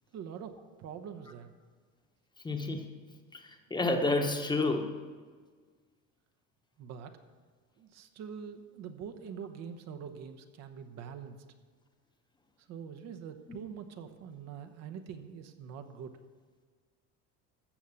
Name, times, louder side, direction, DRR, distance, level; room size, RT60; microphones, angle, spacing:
voice 1, 0.1-1.5 6.8-7.2 7.8-11.4 12.6-16.2, right 7 dB, 55° right, 7 dB, 1.1 m, -44 dB
voice 2, 2.4-2.8 3.3-5.0, left 2 dB, 15° left, 4 dB, 1.1 m, -30 dB
14.5 x 6.5 x 7.1 m, 1.5 s
cardioid pair, 140°, 32 cm